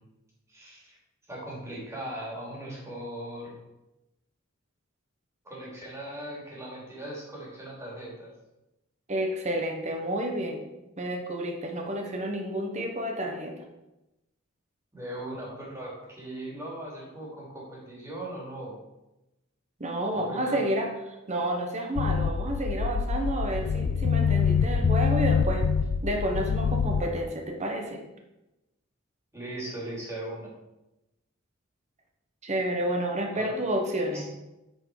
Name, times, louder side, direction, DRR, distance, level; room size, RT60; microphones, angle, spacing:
voice 1, 0.5-1.0 1.3-3.6 5.4-8.3 14.9-18.8 20.1-20.6 29.3-30.5 33.3-33.6 34.1-34.2, right 1 dB, 15° right, -5 dB, 2.8 m, -39 dB
voice 2, 9.1-10.6 11.0-13.6 19.8-25.7 26.0-28.0 32.4-34.3, right 1 dB, 35° right, 2 dB, 1.1 m, -30 dB
sound 1, 22.0-27.0, left 6 dB, 65° left, 0.4 m, -25 dB
9.0 x 4.8 x 4.9 m, 0.95 s
head